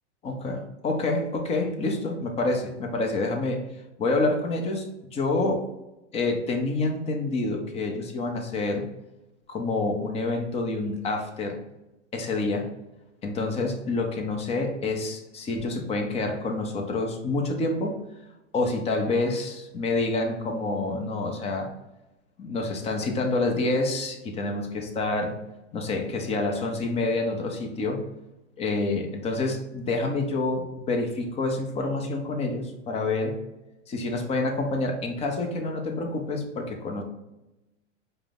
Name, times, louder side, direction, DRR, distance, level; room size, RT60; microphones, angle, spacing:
voice 1, 0.2-3.6 4.0-5.6 6.1-8.9 9.5-11.6 12.1-12.7 13.2-18.0 18.5-21.7 22.4-25.4 25.7-28.0 28.6-33.4 33.9-37.0, left 2 dB, 15° left, 3 dB, 0.6 m, -27 dB
4.8 x 2.1 x 3.5 m, 0.97 s
hypercardioid pair, 125°, 37 cm